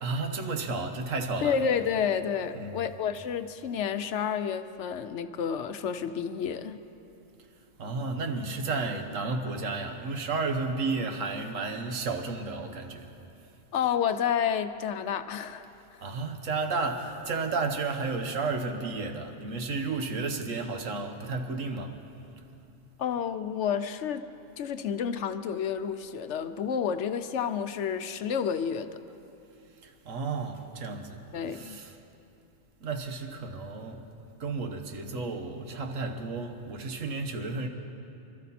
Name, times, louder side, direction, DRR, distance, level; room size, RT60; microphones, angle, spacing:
voice 1, 0.0-1.6 2.5-2.7 7.8-13.1 16.0-22.0 29.8-31.2 31.5-31.9 32.8-34.0 34.4-37.7, right 3 dB, 80° right, 5 dB, 1.5 m, -32 dB
voice 2, 1.4-6.8 13.7-15.7 23.0-24.3 24.6-29.0 31.3-31.8, left 7 dB, 70° left, 10 dB, 0.9 m, -30 dB
25.5 x 13.0 x 4.2 m, 2.8 s
omnidirectional pair, 1.3 m